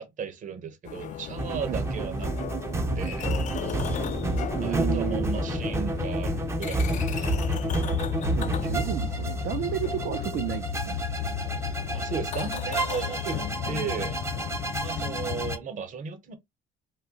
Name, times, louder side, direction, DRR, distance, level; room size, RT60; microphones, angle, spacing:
voice 1, 0.0-2.5 3.0-3.3 4.6-7.3 11.9-14.2 14.8-16.3, right 6 dB, 50° right, 0.8 m, -35 dB
sound 1, 0.9-15.6, left 9 dB, 45° left, 0.4 m, -33 dB
sound 2, 1.4-15.6, right 2 dB, 15° right, 0.5 m, -30 dB
voice 2, 4.6-5.3 8.3-11.1, right 12 dB, 70° right, 0.5 m, -32 dB
2.7 x 2.1 x 3.7 m
cardioid pair, 110°, 17 cm